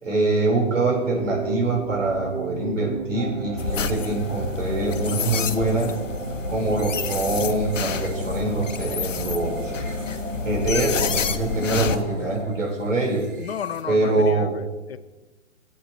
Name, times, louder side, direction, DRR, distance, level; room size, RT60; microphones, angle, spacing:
voice 1, 0.0-5.9 6.5-9.7 10.4-13.2 13.9-14.6, right 2 dB, 80° right, -2 dB, 4.2 m, -24 dB
sound 1, 0.7-14.3, right 4 dB, 45° right, 1.2 m, -35 dB
sound 2, 3.1-12.5, equal, 30° right, 1.9 m, -39 dB
sound 3, 3.6-12.0, left 6 dB, 80° left, 0.9 m, -29 dB
voice 2, 12.0-12.4 13.4-14.6 14.9-15.0, left 8 dB, 55° left, 14 dB, 0.5 m, -33 dB
16.5 x 8.4 x 3.0 m, 1.1 s
hypercardioid pair, 150°, 37 cm